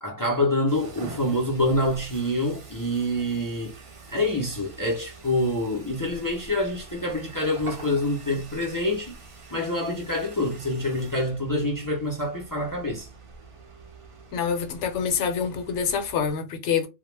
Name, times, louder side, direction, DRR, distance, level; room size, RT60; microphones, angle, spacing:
voice 1, 0.0-3.7 4.1-9.2 9.5-13.1, left 1 dB, 35° left, 0.3 m, -26 dB
sound 1, 0.7-16.3, right 3 dB, 45° right, 0.4 m, -45 dB
voice 2, 14.3-16.9, left 7 dB, 70° left, 0.9 m, -26 dB
2.2 x 2.1 x 3.1 m
omnidirectional pair, 1.3 m